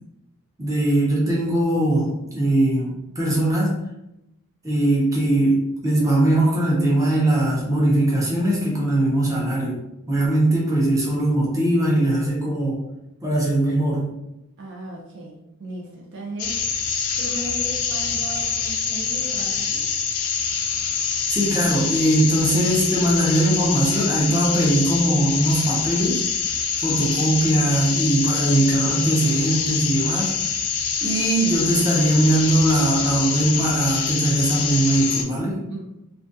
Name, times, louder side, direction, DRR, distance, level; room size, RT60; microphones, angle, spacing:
voice 1, 0.6-3.8 4.6-9.8 10.1-12.8 13.2-14.1 21.3-26.2 26.8-30.3 31.0-35.6, right 1 dB, 15° right, -5 dB, 0.6 m, -20 dB
voice 2, 14.6-15.3 15.6-16.6 17.2-19.8 35.7-35.8, right 2 dB, 55° right, -2 dB, 0.4 m, -36 dB
sound 1, 16.4-35.2, left 6 dB, 75° left, 0.4 m, -25 dB
2.4 x 2.2 x 2.5 m, 0.88 s
head